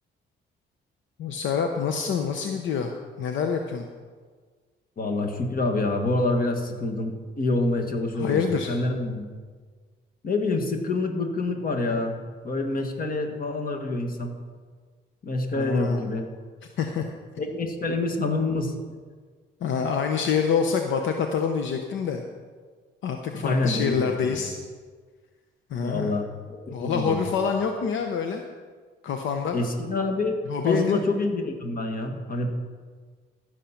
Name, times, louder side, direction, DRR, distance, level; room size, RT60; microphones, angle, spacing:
voice 1, 1.2-2.9 3.2-3.9 8.1-8.7 15.5-16.0 16.8-17.0 19.6-22.2 23.0-24.5 25.7-26.2 26.7-28.4 29.0-29.6 30.5-31.0, left 6 dB, 75° left, 4 dB, 0.9 m, -26 dB
voice 2, 5.0-9.3 10.2-14.3 15.2-16.3 17.4-18.7 23.3-24.0 24.4-24.5 25.8-27.2 29.5-30.4 30.6-32.5, left 2 dB, 45° left, 4 dB, 1.8 m, -27 dB
14.0 x 6.6 x 5.8 m, 1.5 s
cardioid pair, 90°, 20 cm